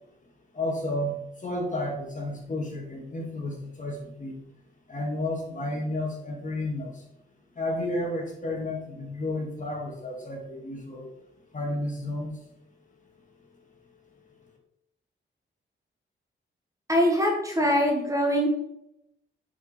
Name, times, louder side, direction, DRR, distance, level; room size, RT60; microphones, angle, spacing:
voice 1, 0.5-4.4 4.7-7.1 7.5-12.5, left 1 dB, 40° left, -1 dB, 2.3 m, -32 dB
voice 2, 16.9-18.5, equal, 15° right, 1 dB, 1.5 m, -23 dB
9.0 x 5.1 x 4.2 m, 0.83 s
wide cardioid pair, 120°, 21 cm